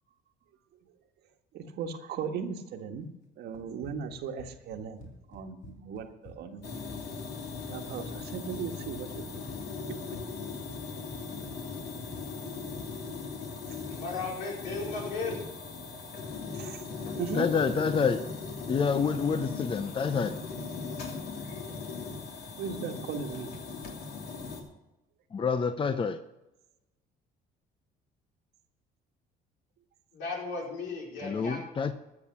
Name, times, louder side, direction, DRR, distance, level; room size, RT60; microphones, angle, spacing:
voice 1, 1.5-3.1 3.4-6.9 7.7-9.5 9.8-10.2 13.7-13.8 16.5-16.9 17.1-17.5 22.6-23.5, right 6 dB, 65° right, 6 dB, 1.6 m, -38 dB
Run, 3.5-13.0, left 2 dB, 45° left, 2.5 m, -51 dB
sound 1, 6.6-24.6, left 4 dB, 65° left, 2.8 m, -39 dB
voice 2, 13.9-15.4 30.1-31.6, left 3 dB, 80° left, -2 dB, 4.8 m, -35 dB
voice 3, 17.3-18.2 18.7-20.4 25.3-26.2 31.2-31.9, left 5 dB, 30° left, 11 dB, 0.7 m, -27 dB
13.5 x 6.9 x 7.2 m, 0.97 s
supercardioid pair, 90°, 18 cm